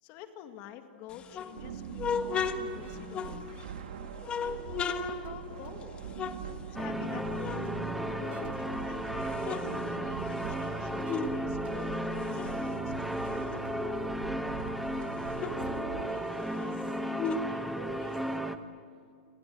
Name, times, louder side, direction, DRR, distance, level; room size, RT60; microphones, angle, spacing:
voice 1, 0.0-3.7 4.4-6.0 6.8-7.5 8.0-13.5, left 9 dB, 40° left, 7 dB, 2.2 m, -48 dB
sound 1, 1.1-3.8 4.2-7.1 7.4-8.7 9.1-11.4 11.7-14.2 14.6-14.7 14.9-18.4, left 5 dB, 20° left, 1.5 m, -37 dB
sound 2, 1.6-16.0, right 7 dB, 85° right, 2.7 m, -43 dB
sound 3, 6.7-18.6, equal, ahead, 1.2 m, -34 dB
voice 2, 15.3-17.0 17.3-18.6, right 4 dB, 65° right, 7 dB, 6.2 m, -47 dB
29.5 x 24.5 x 7.9 m, 2.3 s
supercardioid pair, 155°, 5 cm